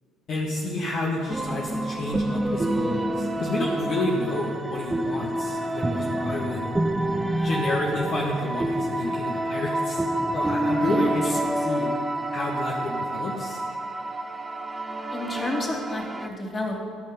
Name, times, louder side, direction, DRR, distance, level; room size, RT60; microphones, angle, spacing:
voice 1, 0.3-6.7 7.3-10.0 10.3-11.9 12.3-13.6, left 1 dB, 50° left, -2 dB, 1.6 m, -30 dB
sound 1, 1.3-16.3, right 1 dB, 15° right, 0.9 m, -28 dB
voice 2, 10.8-11.4 15.1-16.8, left 2 dB, 25° left, 0 dB, 2.9 m, -31 dB
14.0 x 5.8 x 9.3 m, 2.2 s
figure-of-eight pair, 55°, 0 cm